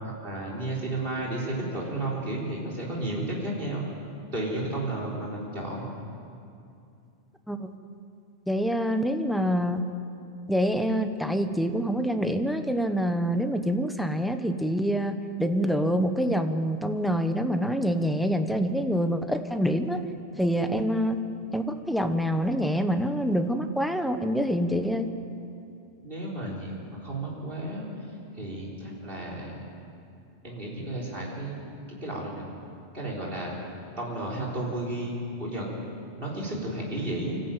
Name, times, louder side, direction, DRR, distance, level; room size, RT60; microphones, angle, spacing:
voice 1, 0.0-3.8 4.3-5.8 26.0-27.9 28.3-29.6 30.4-31.6 32.0-32.5 32.9-33.6 34.0-35.7 36.2-37.4, right 1 dB, 50° right, -3 dB, 4.3 m, -32 dB
voice 2, 8.5-9.9 10.5-20.0 20.4-21.2 21.5-25.1, equal, ahead, 7 dB, 1.0 m, -26 dB
25.0 x 14.0 x 9.1 m, 2.5 s
omnidirectional pair, 1.2 m